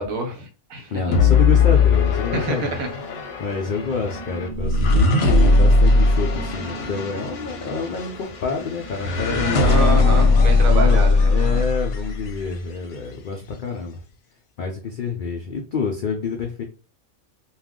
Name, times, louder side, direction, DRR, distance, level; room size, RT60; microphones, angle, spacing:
voice 1, 0.0-1.2 2.3-2.9 9.6-11.6, right 3 dB, 75° right, 5 dB, 1.1 m, -27 dB
voice 2, 0.9-9.9 10.7-14.0 14.6-16.6, left 4 dB, 80° left, 2 dB, 0.4 m, -28 dB
sound 1, 1.1-12.4, left 3 dB, 55° left, 0.8 m, -19 dB
sound 2, 2.6-10.4, right 3 dB, 50° right, 0.5 m, -40 dB
2.4 x 2.3 x 3.5 m, 0.36 s
omnidirectional pair, 1.4 m